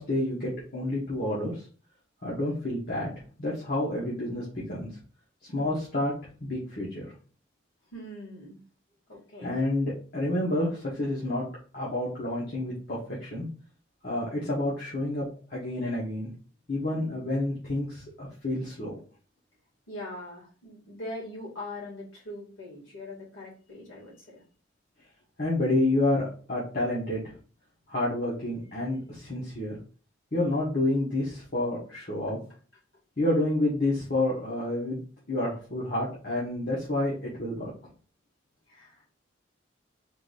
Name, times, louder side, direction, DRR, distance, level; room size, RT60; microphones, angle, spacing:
voice 1, 0.0-1.7 2.2-3.1 3.4-4.9 5.5-6.1 6.4-7.1 9.4-11.4 11.7-13.5 14.0-15.2 15.5-16.3 16.7-19.0 25.4-27.3 27.9-29.8 30.3-32.4 33.2-35.0 35.3-37.7, left 1 dB, 50° left, -6 dB, 1.3 m, -29 dB
voice 2, 7.9-8.6 9.1-9.5 19.9-24.4 38.7-39.1, left 1 dB, 80° left, -5 dB, 2.3 m, -42 dB
4.7 x 3.8 x 2.6 m, 0.40 s
head